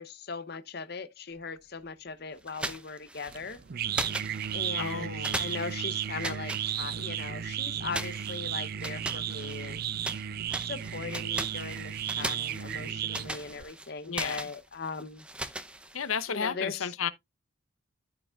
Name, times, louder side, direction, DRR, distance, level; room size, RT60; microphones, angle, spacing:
voice 1, 0.0-3.6 4.5-9.8 10.6-15.2 16.3-16.9, left 4 dB, 50° left, 0.8 m, -39 dB
sound 1, 2.5-3.6 3.9-4.9 5.2-7.3 7.9-10.2 10.5-16.3, right 1 dB, 5° right, 0.7 m, -39 dB
sound 2, 3.3-13.6, right 9 dB, 45° right, 0.4 m, -34 dB
voice 2, 4.8-5.6 14.1-14.4 15.9-17.1, left 6 dB, 80° left, 0.8 m, -33 dB
13.5 x 4.8 x 2.4 m
head